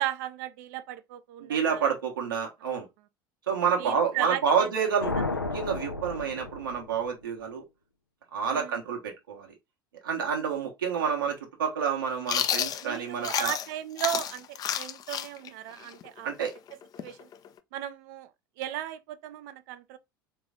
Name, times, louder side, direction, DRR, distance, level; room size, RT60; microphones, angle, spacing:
voice 1, 0.0-1.9 3.8-4.7 8.4-8.7 12.8-16.3 17.0-17.3 17.7-18.3 18.6-20.0, right 12 dB, 55° right, 0.5 m, -36 dB
voice 2, 1.4-2.9 3.5-7.6 8.3-9.5 10.0-13.5 16.2-16.5, right 6 dB, 75° right, 1.1 m, -29 dB
sound 1, 5.0-7.2, left 3 dB, 90° left, 0.5 m, -33 dB
Chewing mastication, 12.3-13.7 14.0-17.6, left 9 dB, 35° left, 0.5 m, -31 dB
3.9 x 3.0 x 3.5 m
figure-of-eight pair, 70°, 11 cm